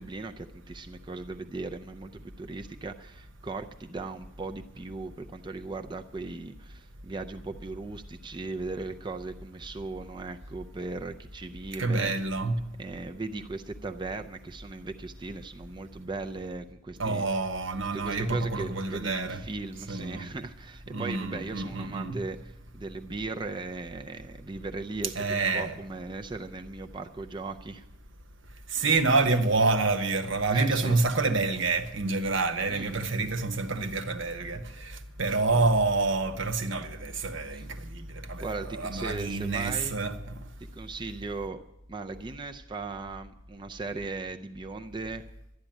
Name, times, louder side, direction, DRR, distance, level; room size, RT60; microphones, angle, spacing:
voice 1, 0.0-12.1 12.8-17.2 17.9-27.8 30.5-31.0 32.7-33.1 35.5-35.7 37.5-37.7 38.4-40.0 40.6-41.6 41.9-45.2, right 3 dB, 25° right, 0.5 m, -38 dB
voice 2, 11.8-12.6 17.0-19.4 19.9-20.3 20.9-22.2 25.1-25.8 28.7-40.4, right 3 dB, 70° right, 1.1 m, -28 dB
11.5 x 11.5 x 9.0 m
head